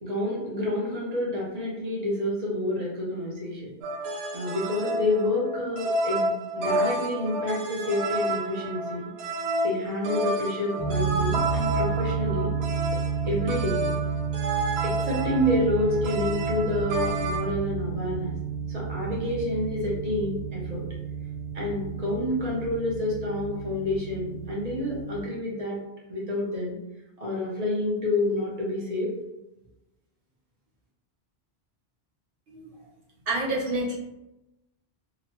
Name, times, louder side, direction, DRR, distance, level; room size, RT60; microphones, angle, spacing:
voice 1, 0.0-3.7 4.3-9.1 9.6-12.5 13.2-13.8 14.8-18.4 18.7-20.8 21.5-25.8 26.1-26.7 27.2-29.1, left 1 dB, 40° right, -4 dB, 0.9 m, -28 dB
sound 1, 3.8-17.5, right 1 dB, 85° right, 0.8 m, -30 dB
sound 2, 10.8-25.2, right 7 dB, 25° right, 0.4 m, -31 dB
voice 2, 33.3-33.9, right 1 dB, 65° right, -5 dB, 1.0 m, -28 dB
2.9 x 2.1 x 2.9 m, 0.94 s
omnidirectional pair, 1.1 m